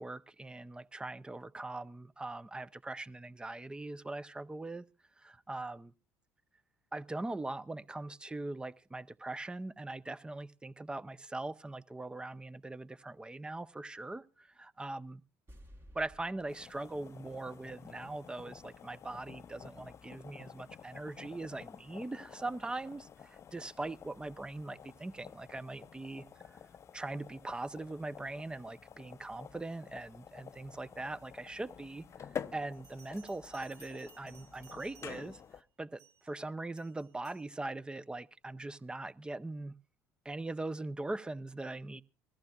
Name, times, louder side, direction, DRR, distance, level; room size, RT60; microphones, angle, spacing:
voice 1, 0.0-4.9 5.2-5.9 6.9-15.2 15.9-26.2 26.9-32.0 32.5-39.7 40.2-42.0, right 2 dB, 10° right, 0.6 m, -41 dB
sound 1, 15.5-18.7 18.9-19.0, equal, 30° right, 2.1 m, -59 dB
sound 2, 16.5-35.6, left 8 dB, 40° left, 0.6 m, -50 dB
Bell, 32.7-35.4 36.0-36.3 36.8-37.5, right 6 dB, 50° right, 2.5 m, -60 dB
22.0 x 14.0 x 2.4 m
hypercardioid pair, 70°, 7 cm